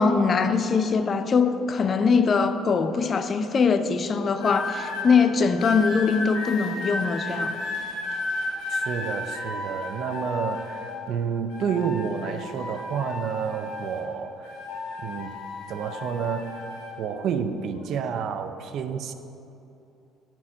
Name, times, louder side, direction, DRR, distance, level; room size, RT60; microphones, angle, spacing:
voice 1, 0.0-7.5, left 5 dB, 40° left, 10 dB, 0.5 m, -22 dB
sound 1, 4.3-5.1 5.6-11.1 11.5-14.1 14.4-16.9 17.7-18.0, left 2 dB, 85° left, 1.9 m, -33 dB
voice 2, 8.7-14.6 15.0-15.4 15.7-16.6 17.0-19.1, right 7 dB, 60° right, 9 dB, 0.5 m, -30 dB
9.5 x 4.6 x 6.1 m, 2.8 s
supercardioid pair, 90°, 0 cm